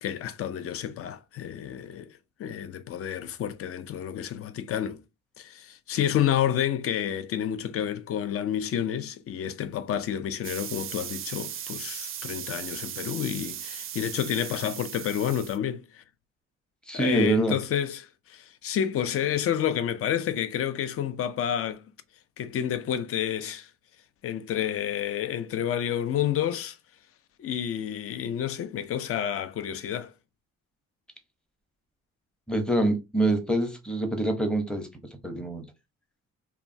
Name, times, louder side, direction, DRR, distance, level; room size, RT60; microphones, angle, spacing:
voice 1, 0.0-2.1 2.4-5.0 5.4-16.0 16.9-21.8 22.4-23.7 24.2-26.8 27.4-30.1, left 10 dB, 50° left, 0.5 m, -29 dB
sound 1, 10.4-15.6, right 10 dB, 45° right, 0.4 m, -37 dB
voice 2, 16.9-17.6 32.5-34.9 35.2-35.7, right 1 dB, 5° left, 0.7 m, -25 dB
3.0 x 2.3 x 2.6 m
cardioid pair, 90°, 30 cm